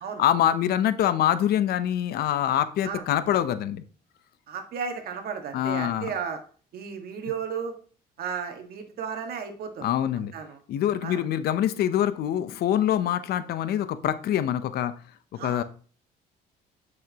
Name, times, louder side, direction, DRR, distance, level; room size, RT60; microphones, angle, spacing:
voice 1, 0.2-3.8 5.5-6.1 9.8-10.3 10.7-14.9 15.3-15.6, left 11 dB, 70° left, 12 dB, 0.7 m, -25 dB
voice 2, 4.5-6.4 6.7-7.8 8.2-9.9 10.1-10.6 11.0-11.2 15.4-15.6, right 6 dB, 65° right, 5 dB, 1.7 m, -34 dB
8.8 x 6.4 x 3.0 m, 0.41 s
cardioid pair, 110°, 17 cm